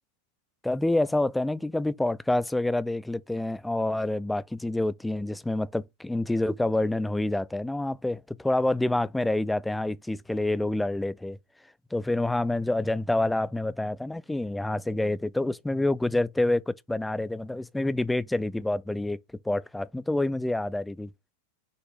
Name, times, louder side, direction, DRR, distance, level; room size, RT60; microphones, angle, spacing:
voice 1, 0.6-11.4 11.9-19.2 19.5-21.1, left 2 dB, 5° left, 0.3 m, -27 dB
6.3 x 2.5 x 3.3 m
figure-of-eight pair, 90°, 0 cm